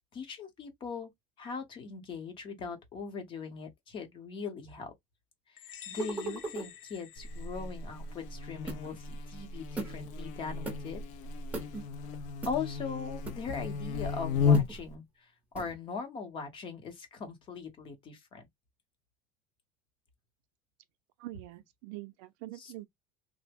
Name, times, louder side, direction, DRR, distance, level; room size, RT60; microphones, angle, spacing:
voice 1, 0.1-1.1 1.4-4.9 5.5-11.0 12.5-15.0 15.5-18.4 22.6-22.7, left 5 dB, 30° left, 0.8 m, -40 dB
sound 1, 5.6-8.1, left 9 dB, 85° left, 0.9 m, -49 dB
sound 2, 6.0-6.7 8.7-9.0 9.8-10.0 10.7-10.8 11.5-11.8 12.4-12.6 13.2-13.6 14.5-14.8 15.5-15.8, right 3 dB, 10° right, 0.7 m, -38 dB
Buzz, 7.2-14.9, left 5 dB, 45° left, 0.4 m, -33 dB
voice 2, 21.2-22.9, right 17 dB, 65° right, 0.5 m, -44 dB
3.2 x 2.0 x 3.3 m
cardioid pair, 175°, 17 cm